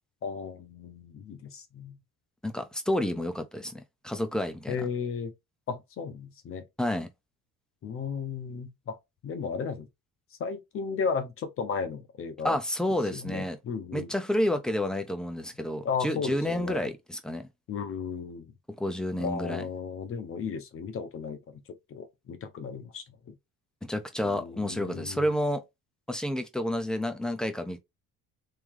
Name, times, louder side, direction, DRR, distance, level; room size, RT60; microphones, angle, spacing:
voice 1, 0.2-2.0 4.7-5.3 5.7-6.6 7.8-9.0 9.2-9.9 10.4-12.5 13.1-14.1 15.8-16.9 17.7-18.5 19.2-21.6 21.9-23.3 24.2-25.3, left 6 dB, 40° left, 0.7 m, -35 dB
voice 2, 2.4-4.8 6.8-7.1 12.4-13.6 13.9-17.5 18.8-19.7 23.8-25.6 26.1-27.8, left 1 dB, ahead, 0.4 m, -30 dB
3.5 x 3.3 x 3.6 m
cardioid pair, 170°, 34 cm